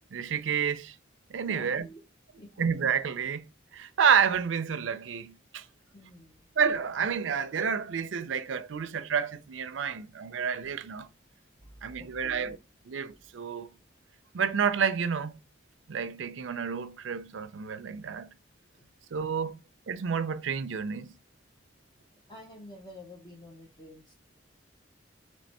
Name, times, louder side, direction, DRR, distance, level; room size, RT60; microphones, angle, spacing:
voice 1, 0.1-1.0 1.3-1.9 2.6-3.5 3.7-5.7 6.6-11.1 11.8-12.6 12.9-13.7 14.3-15.4 15.9-18.3 19.1-19.6 19.9-21.1, right 6 dB, 80° right, 0.5 m, -29 dB
voice 2, 1.3-2.0 2.4-2.7 5.9-6.4 11.6-12.5 18.8-18.9 19.4-19.6 22.3-24.1, left 1 dB, 25° left, 0.7 m, -49 dB
3.3 x 3.2 x 4.1 m
head